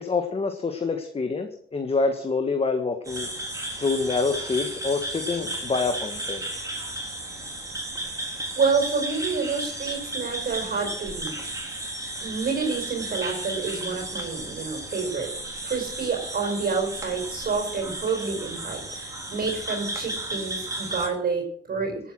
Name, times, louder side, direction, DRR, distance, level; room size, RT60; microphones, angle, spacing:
voice 1, 0.0-3.3 3.8-6.4, left 4 dB, 30° left, 5 dB, 1.5 m, -26 dB
sound 1, 3.0-21.1, right 1 dB, 15° right, 3.6 m, -34 dB
voice 2, 8.5-11.4 12.2-15.3 15.6-22.1, right 4 dB, 50° right, 2 dB, 4.7 m, -28 dB
17.5 x 8.4 x 6.2 m, 0.66 s
cardioid pair, 90°, 20 cm